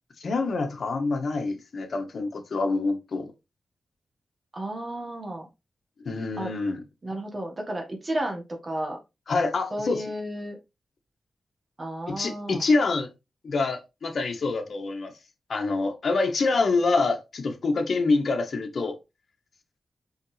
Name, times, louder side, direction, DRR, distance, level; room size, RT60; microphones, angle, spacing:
voice 1, 0.2-3.3 6.0-6.8 9.3-10.0 12.1-13.1 13.4-15.1 15.5-18.9, left 3 dB, 60° left, 1.6 m, -26 dB
voice 2, 4.5-5.5 6.4-6.5 7.0-9.0 9.7-10.6 11.8-12.6, right 1 dB, 30° right, 1.7 m, -32 dB
5.6 x 5.3 x 3.4 m
wide cardioid pair, 120°, 0 cm